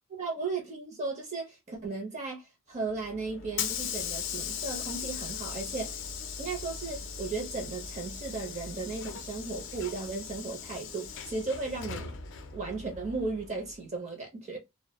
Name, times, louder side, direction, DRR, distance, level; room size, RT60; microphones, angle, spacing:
voice 1, 0.1-6.0 6.4-12.2 12.5-14.6, right 3 dB, 35° right, 0.6 m, -36 dB
Hiss / Sliding door, 2.9-13.7, left 7 dB, 60° left, 0.4 m, -39 dB
2.2 x 2.0 x 2.9 m
head